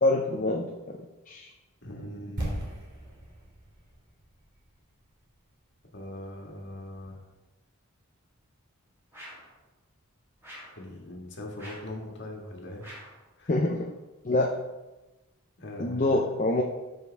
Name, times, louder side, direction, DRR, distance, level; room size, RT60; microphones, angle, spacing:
voice 1, 0.0-1.0 1.3-1.5 13.5-13.9 14.2-14.5 15.8-16.6, left 2 dB, 35° left, 0 dB, 0.6 m, -25 dB
voice 2, 1.8-2.7 5.9-7.2 10.8-12.8 13.4-13.5 15.6-16.2, left 1 dB, 55° left, 0 dB, 1.8 m, -41 dB
sound 1, 2.4-6.3 6.6-6.7, right 1 dB, 50° right, 2.9 m, -39 dB
sound 2, 9.1-9.5 10.4-10.8 11.6-12.0 12.8-13.2, equal, 10° right, 2.4 m, -46 dB
13.0 x 5.2 x 3.5 m, 1.1 s
head